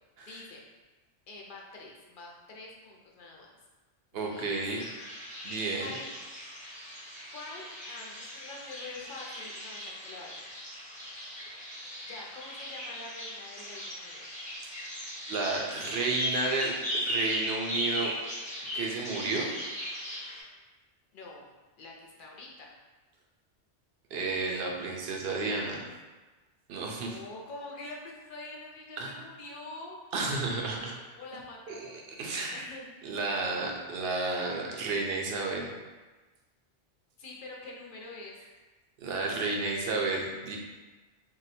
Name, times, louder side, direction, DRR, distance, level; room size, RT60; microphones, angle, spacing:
voice 1, 0.3-0.6 1.3-3.5 4.1-4.5 5.3-6.1 7.3-10.3 12.1-14.2 21.1-21.5 21.8-22.7 26.8-30.0 31.2-33.8 37.2-38.4, left 2 dB, 55° left, -2 dB, 0.7 m, -46 dB
voice 2, 4.1-4.8 5.4-5.9 15.3-18.1 18.7-19.5 24.1-25.8 26.7-27.2 29.0-29.2 30.1-30.9 31.7-32.6 33.0-35.7 39.0-40.6, right 3 dB, 65° right, 0 dB, 0.8 m, -32 dB
sound 1, 4.7-20.4, equal, 10° left, 0.6 m, -38 dB
2.7 x 2.2 x 4.1 m, 1.2 s
omnidirectional pair, 1.2 m